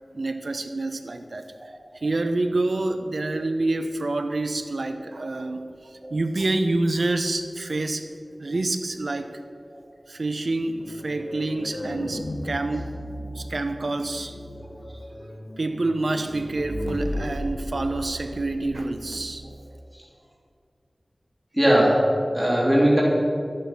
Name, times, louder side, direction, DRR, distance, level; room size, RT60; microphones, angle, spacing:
voice 1, 0.1-1.5 1.9-5.7 6.1-8.1 8.4-9.3 10.1-12.9 13.3-14.4 15.6-19.4, right 2 dB, 80° right, 8 dB, 0.9 m, -27 dB
sound 1, 10.8-19.5, left 1 dB, 65° left, 1.6 m, -36 dB
voice 2, 21.5-23.0, equal, 10° right, -5 dB, 3.1 m, -19 dB
13.0 x 11.5 x 5.7 m, 2.3 s
wide cardioid pair, 55°, 0 cm